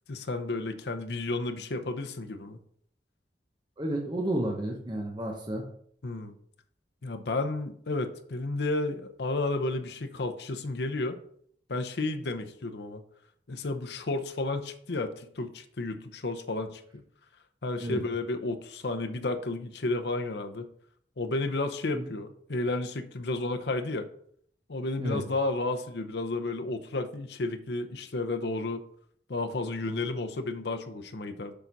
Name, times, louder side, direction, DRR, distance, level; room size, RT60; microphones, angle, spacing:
voice 1, 0.1-2.6 6.0-6.3 7.0-11.2 11.7-13.0 13.5-17.0 17.6-20.7 21.2-24.1 24.7-28.8 29.3-31.5, left 2 dB, 70° left, 6 dB, 0.7 m, -32 dB
voice 2, 3.8-5.6 17.8-18.0 21.9-22.1 25.0-25.2, right 1 dB, 25° right, 0 dB, 0.9 m, -31 dB
6.8 x 4.0 x 5.9 m, 0.64 s
head